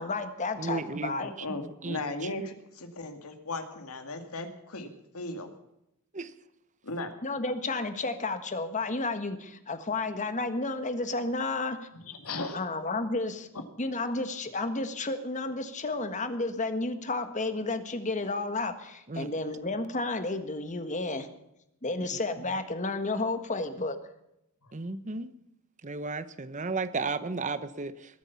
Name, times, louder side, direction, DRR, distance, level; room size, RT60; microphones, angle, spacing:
voice 1, 0.0-1.3 7.2-11.9 12.5-13.5 13.8-21.3 21.8-24.0, left 3 dB, 35° left, 9 dB, 1.5 m, -32 dB
voice 2, 0.6-1.2 1.8-2.0 6.1-6.3 19.1-19.3 24.7-25.3 25.8-28.2, right 3 dB, 35° right, 13 dB, 0.9 m, -34 dB
voice 3, 1.2-5.5 6.8-7.1 12.0-12.6, left 2 dB, 85° left, 6 dB, 2.3 m, -37 dB
20.5 x 9.7 x 7.1 m, 0.82 s
head